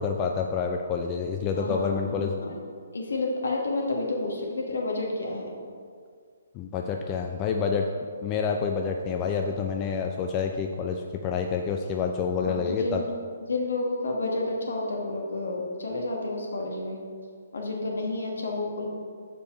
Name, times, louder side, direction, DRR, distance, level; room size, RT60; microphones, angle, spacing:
voice 1, 0.0-2.3 6.5-7.9 8.2-13.0, left 5 dB, 25° left, 3 dB, 0.4 m, -28 dB
voice 2, 1.5-2.6 2.9-5.5 12.4-13.0 13.5-17.0 17.5-18.9, left 2 dB, 70° left, 0 dB, 1.5 m, -30 dB
6.9 x 5.1 x 4.4 m, 2.1 s
figure-of-eight pair, 135°, 0 cm